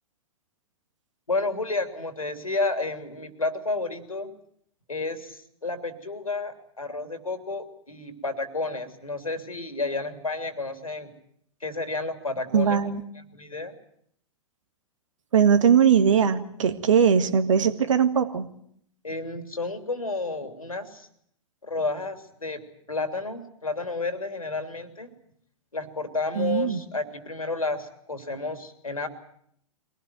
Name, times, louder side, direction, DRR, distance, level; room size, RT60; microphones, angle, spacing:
voice 1, 1.3-4.3 4.9-11.1 11.6-12.8 13.3-13.7 19.0-21.1 21.6-22.6 22.9-25.1 25.7-29.1, left 3 dB, 85° left, 8 dB, 3.0 m, -31 dB
voice 2, 12.5-13.0 15.3-18.5 26.4-26.8, right 7 dB, 65° right, 10 dB, 1.9 m, -20 dB
23.5 x 18.0 x 9.3 m, 0.69 s
figure-of-eight pair, 105°, 17 cm